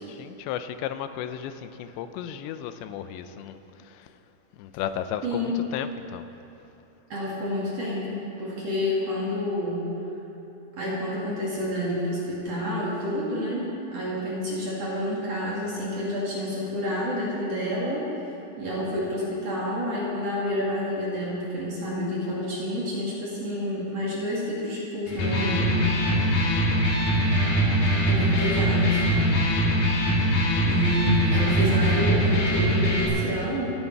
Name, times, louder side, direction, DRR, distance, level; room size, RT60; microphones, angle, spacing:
voice 1, 0.1-4.1 4.6-6.3 26.0-27.1, left 9 dB, 85° left, 10 dB, 2.9 m, -35 dB
voice 2, 5.2-5.6 7.1-9.9 10.8-18.1 18.6-25.7 28.1-29.4 30.6-33.7, equal, 45° right, -6 dB, 2.8 m, -28 dB
Electric guitar, 25.1-33.1, equal, 60° left, 3.6 m, -22 dB
24.0 x 9.6 x 4.7 m, 3.0 s
omnidirectional pair, 5.0 m